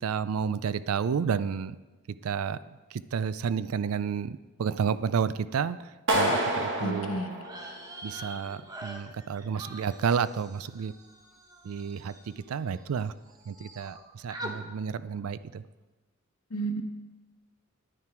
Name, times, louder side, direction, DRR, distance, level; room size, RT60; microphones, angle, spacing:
voice 1, 0.0-1.8 2.2-5.8 6.1-7.2 8.0-10.9 11.6-12.1 12.5-13.1 13.5-15.6, right 6 dB, 85° right, 16 dB, 0.4 m, -31 dB
Clapping, 6.1-8.1, right 1 dB, 60° right, 1.8 m, -28 dB
voice 2, 6.8-7.3 16.5-16.8, right 2 dB, 70° left, 6 dB, 1.0 m, -31 dB
sound 1, 7.4-13.0 13.3-14.0 14.3-14.6, right 1 dB, 20° right, 1.0 m, -44 dB
10.0 x 9.5 x 4.4 m, 1.2 s
head